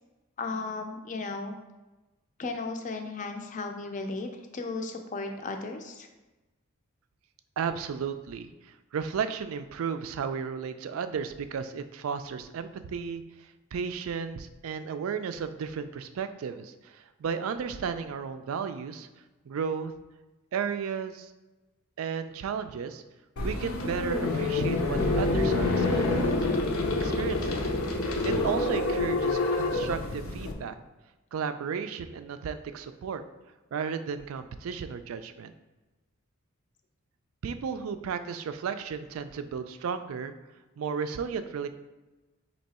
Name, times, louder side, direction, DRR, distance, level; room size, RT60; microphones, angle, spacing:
voice 1, 0.4-1.5 2.4-4.3 4.5-6.1, left 3 dB, 40° left, 4 dB, 0.5 m, -35 dB
voice 2, 7.6-8.5 8.9-19.1 19.5-19.9 20.5-21.3 22.0-23.0 23.4-26.4 27.0-27.6 28.2-30.7 31.3-33.2 33.7-35.5 37.4-40.3 40.8-41.7, right 6 dB, 80° right, 10 dB, 0.4 m, -34 dB
sound 1, 23.4-30.5, left 2 dB, 80° left, 0.6 m, -27 dB
4.4 x 2.9 x 4.1 m, 1.1 s
head